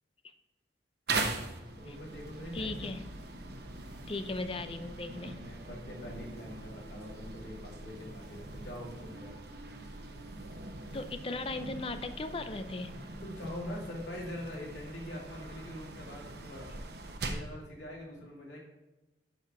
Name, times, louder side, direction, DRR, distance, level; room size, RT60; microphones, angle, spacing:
sound 1, 1.1-17.6, right 3 dB, 60° right, 0.9 m, -41 dB
voice 1, 1.8-3.0 5.1-9.3 13.2-16.8 17.2-18.6, left 1 dB, 80° left, -2 dB, 2.4 m, -44 dB
sound 2, 2.1-12.6, right 1 dB, 5° right, 0.8 m, -54 dB
voice 2, 2.5-3.0 4.1-5.4 10.9-12.9, left 3 dB, 30° left, 10 dB, 0.5 m, -37 dB
6.8 x 5.8 x 4.8 m, 1.0 s
head